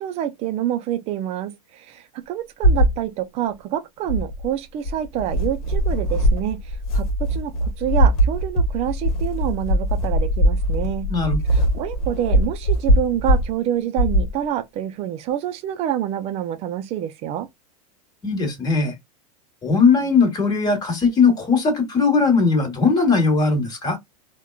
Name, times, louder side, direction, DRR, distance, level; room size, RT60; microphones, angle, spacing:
voice 1, 0.0-11.1 11.5-17.5, right 11 dB, 35° right, 0.4 m, -27 dB
sound 1, 2.6-3.0 4.1-4.4 4.8-13.5 14.0-14.3, equal, 70° left, 1.0 m, -20 dB
voice 2, 11.1-11.4 18.2-18.9 19.6-24.0, left 4 dB, 20° left, 1.3 m, -19 dB
3.5 x 2.2 x 2.3 m
supercardioid pair, 135°, 19 cm